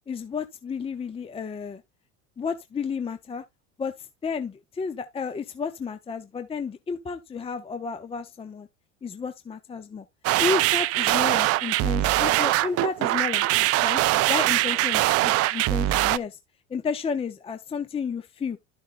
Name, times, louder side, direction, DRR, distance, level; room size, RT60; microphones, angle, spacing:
voice 1, 0.1-1.8 2.4-3.4 3.8-3.9 4.2-8.7 9.0-10.0 10.4-14.0 14.3-16.4 16.7-18.6, left 5 dB, 15° left, 0.7 m, -32 dB
sound 1, 10.2-16.2, right 16 dB, 40° right, 0.5 m, -22 dB
12.0 x 6.2 x 2.5 m
hypercardioid pair, 100°, 36 cm